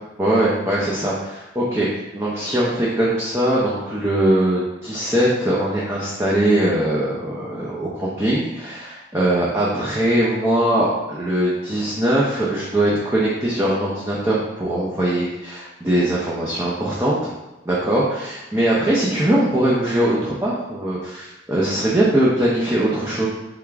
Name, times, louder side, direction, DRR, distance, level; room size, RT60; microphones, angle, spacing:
voice 1, 0.2-1.9 2.1-17.3 17.6-23.3, right 1 dB, 15° right, -7 dB, 0.6 m, -21 dB
3.5 x 3.5 x 3.4 m, 1.0 s
head